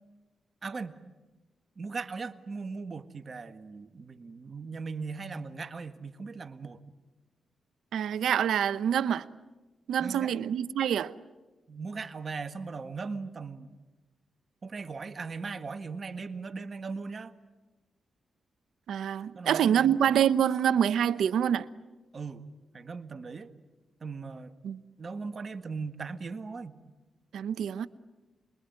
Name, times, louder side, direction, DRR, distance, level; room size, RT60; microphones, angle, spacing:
voice 1, 0.6-1.0 1.7-6.8 10.0-10.3 11.7-13.8 14.6-17.3 19.3-20.0 22.1-22.4 22.7-23.5 24.0-24.5 25.0-26.8, right 4 dB, 50° right, 1.7 m, -38 dB
voice 2, 7.9-9.3 9.9-11.1 18.9-21.7 24.6-24.8 27.3-27.9, right 9 dB, 80° right, 0.8 m, -26 dB
27.5 x 22.5 x 9.6 m
supercardioid pair, 50°, 0 cm